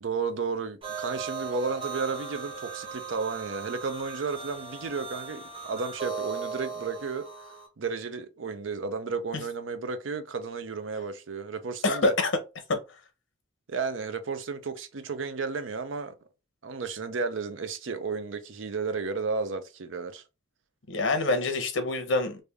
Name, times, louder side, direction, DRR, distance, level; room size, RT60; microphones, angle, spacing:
voice 1, 0.0-7.3 7.8-12.1 13.7-16.1 16.6-20.2, right 4 dB, 80° right, 0.6 m, -33 dB
sound 1, 0.8-7.7, right 5 dB, 30° right, 1.0 m, -38 dB
voice 2, 11.8-12.3 12.7-12.8 20.9-22.4, left 3 dB, 75° left, 0.9 m, -25 dB
3.3 x 2.6 x 3.4 m
head